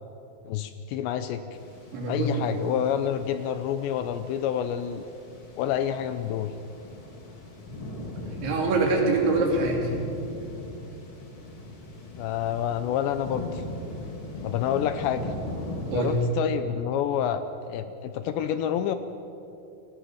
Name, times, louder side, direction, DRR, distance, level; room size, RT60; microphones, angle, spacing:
voice 1, 0.4-1.4 2.1-5.0 5.6-6.5 12.2-13.6 14.4-15.3 15.9-17.4 17.7-19.0, left 9 dB, 80° left, 10 dB, 2.7 m, -28 dB
sound 1, 1.5-16.2, left 1 dB, 35° left, 2.6 m, -39 dB
voice 2, 1.9-2.5 8.4-9.8 15.9-16.1, right 3 dB, 70° right, 0 dB, 5.5 m, -24 dB
29.5 x 18.5 x 6.3 m, 2.8 s
omnidirectional pair, 5.5 m